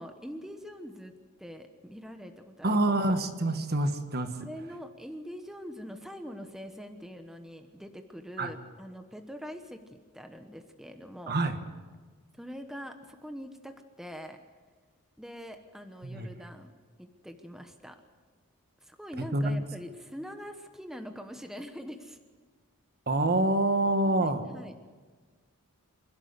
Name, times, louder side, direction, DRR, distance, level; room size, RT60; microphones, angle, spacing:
voice 1, 0.0-2.8 4.4-11.4 12.4-14.4 15.2-16.7 17.0-18.0 18.8-22.2 24.1-24.8, equal, ahead, 6 dB, 1.1 m, -43 dB
voice 2, 2.6-4.5 8.4-8.5 11.3-11.6 16.0-16.3 19.3-19.6 23.1-24.4, right 1 dB, 45° right, 8 dB, 1.4 m, -26 dB
26.5 x 12.5 x 8.1 m, 1.4 s
head